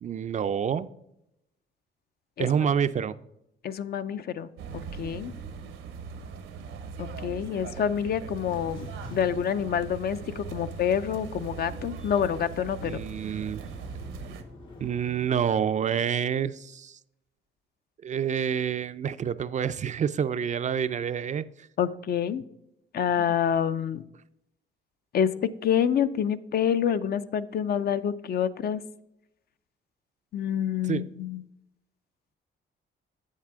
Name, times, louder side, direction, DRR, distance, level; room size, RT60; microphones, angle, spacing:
voice 1, 0.0-0.9 2.4-3.1 12.8-13.6 14.8-17.0 18.0-21.5 30.9-31.1, right 8 dB, 40° right, 13 dB, 0.4 m, -28 dB
voice 2, 3.6-5.3 7.0-13.0 21.8-22.4 22.9-24.0 25.1-28.8 30.3-31.4, left 8 dB, 50° left, 13 dB, 0.5 m, -27 dB
sound 1, 4.6-14.4, right 5 dB, 85° right, 0.9 m, -40 dB
sound 2, 8.4-15.5, left 1 dB, 85° left, 2.5 m, -49 dB
8.2 x 7.4 x 3.5 m, 0.83 s
cardioid pair, 90°, 20 cm